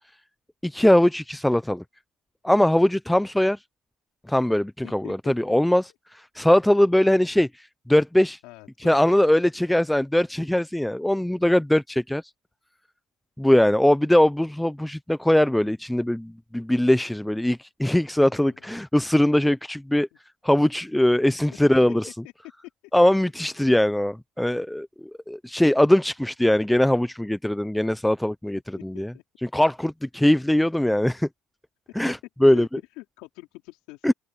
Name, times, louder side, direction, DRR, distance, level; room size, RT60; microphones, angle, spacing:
voice 1, 0.6-1.8 2.4-3.6 4.3-8.4 8.8-12.2 13.4-20.1 20.4-22.1 22.9-29.1 29.4-31.3 32.0-32.7 34.0-34.1, left 1 dB, 5° left, 0.5 m, -21 dB
voice 2, 4.8-5.5 8.4-9.2 18.3-18.7 28.9-29.2 32.4-34.1, left 21 dB, 80° left, 3.6 m, -44 dB
open air
supercardioid pair, 105°, 0 cm